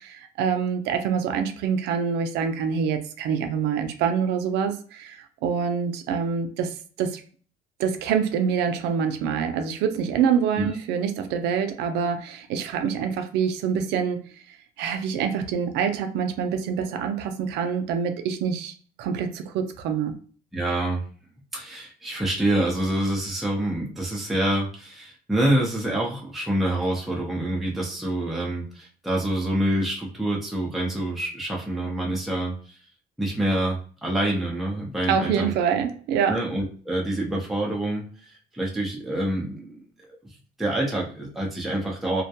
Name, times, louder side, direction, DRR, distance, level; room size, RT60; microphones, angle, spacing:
voice 1, 0.0-7.2 7.8-18.7 19.0-20.2 35.1-36.4, right 7 dB, 85° right, 7 dB, 0.5 m, -26 dB
voice 2, 20.5-21.0 21.5-32.5 33.2-35.5 36.3-39.8 40.6-42.2, right 1 dB, ahead, -3 dB, 0.6 m, -26 dB
2.3 x 2.2 x 2.7 m, 0.42 s
cardioid pair, 110°, 17 cm